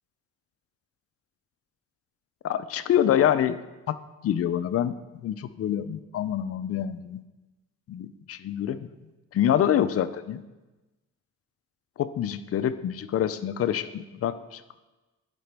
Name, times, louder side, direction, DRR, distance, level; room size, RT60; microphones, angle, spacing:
voice 1, 2.4-3.6 3.9-4.0 4.2-7.2 7.9-8.9 9.3-10.4 12.0-14.8, left 10 dB, 50° left, 13 dB, 0.5 m, -26 dB
11.0 x 4.9 x 3.4 m, 1.1 s
cardioid pair, 90°, 30 cm